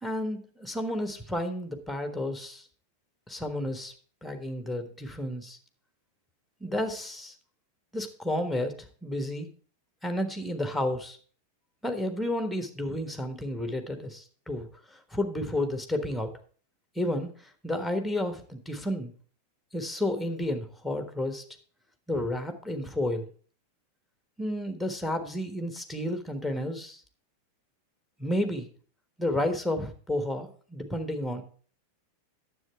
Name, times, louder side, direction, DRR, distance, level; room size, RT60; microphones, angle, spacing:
voice 1, 0.0-2.6 3.3-3.9 4.2-5.6 6.6-7.3 7.9-9.5 10.0-11.2 11.8-16.3 16.9-17.3 17.6-19.1 19.7-21.4 22.1-23.3 24.4-27.0 28.2-28.7 29.2-31.4, left 1 dB, ahead, 8 dB, 1.3 m, -31 dB
9.7 x 7.7 x 4.5 m, 0.43 s
figure-of-eight pair, 90°, 0 cm